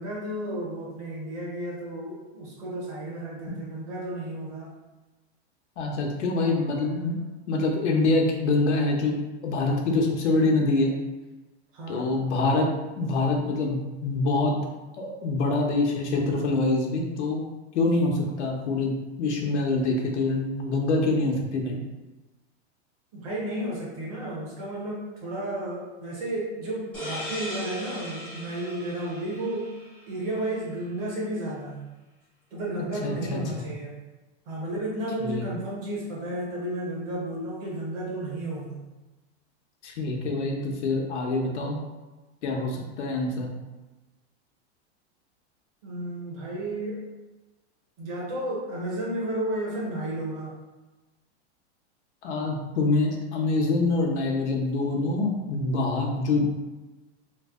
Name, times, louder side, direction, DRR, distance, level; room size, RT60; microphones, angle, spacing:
voice 1, 0.0-4.7 6.4-7.3 11.7-12.1 23.1-29.7 30.1-31.9 32.5-34.0 34.5-38.8 45.8-47.0 48.0-50.5, right 1 dB, 30° right, -4 dB, 0.8 m, -33 dB
voice 2, 5.8-7.2 7.5-10.9 11.9-12.7 13.0-14.6 15.0-17.5 17.7-18.9 19.2-21.8 33.0-33.6 35.2-35.4 39.8-41.8 42.4-43.5 52.2-56.4, left 2 dB, 85° left, 0 dB, 0.9 m, -25 dB
sound 1, 26.9-30.4, equal, 5° left, 0.4 m, -38 dB
3.1 x 2.1 x 3.6 m, 1.1 s
supercardioid pair, 175°, 34 cm